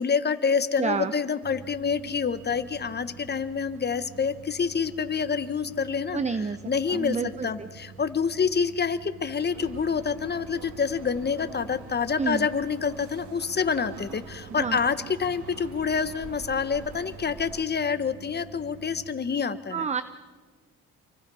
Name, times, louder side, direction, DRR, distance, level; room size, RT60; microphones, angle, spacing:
voice 1, 0.0-6.2 6.6-19.9, left 6 dB, 35° left, 11 dB, 1.4 m, -27 dB
voice 2, 0.8-1.1 6.1-6.6 6.9-7.7 12.2-12.5 14.6-14.8 19.7-20.0, right 5 dB, 20° right, 12 dB, 0.9 m, -28 dB
sound 1, 1.4-19.1, right 5 dB, 90° right, 1.5 m, -48 dB
sound 2, 9.5-17.7, right 6 dB, 70° right, 2.0 m, -46 dB
28.0 x 24.0 x 5.7 m, 1.5 s
cardioid pair, 90°, 30 cm